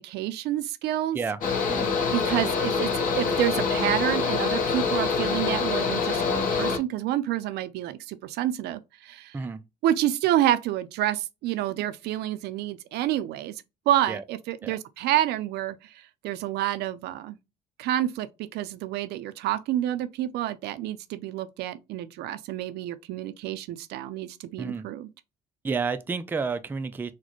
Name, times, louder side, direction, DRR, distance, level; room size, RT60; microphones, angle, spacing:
voice 1, 0.0-1.2 2.1-9.4 9.8-13.5 13.9-17.4 17.8-25.1, right 12 dB, 75° right, 0.4 m, -28 dB
Mechanical fan, 1.4-6.8, left 5 dB, 55° left, 1.0 m, -25 dB
voice 2, 25.6-27.1, right 5 dB, 10° right, 0.3 m, -30 dB
4.1 x 2.1 x 3.0 m
cardioid pair, 110°, 17 cm